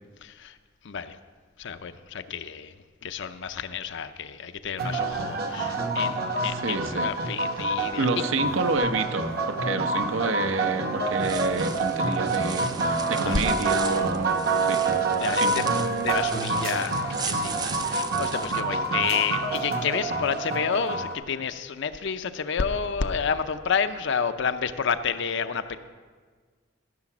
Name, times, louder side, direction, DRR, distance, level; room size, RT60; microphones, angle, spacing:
voice 1, 0.2-0.6 0.8-1.2 1.6-2.7 3.0-8.1 13.2-13.4 15.2-15.6 16.0-25.8, left 6 dB, 65° left, 10 dB, 0.6 m, -30 dB
sound 1, 4.8-21.1, right 3 dB, 50° right, 1.0 m, -27 dB
voice 2, 6.5-7.4 7.9-14.3 14.6-14.8 15.3-15.7, right 3 dB, 75° right, 8 dB, 0.8 m, -29 dB
sound 2, 11.1-18.6, right 5 dB, 20° right, 0.4 m, -37 dB
14.5 x 6.7 x 6.0 m, 1.5 s
head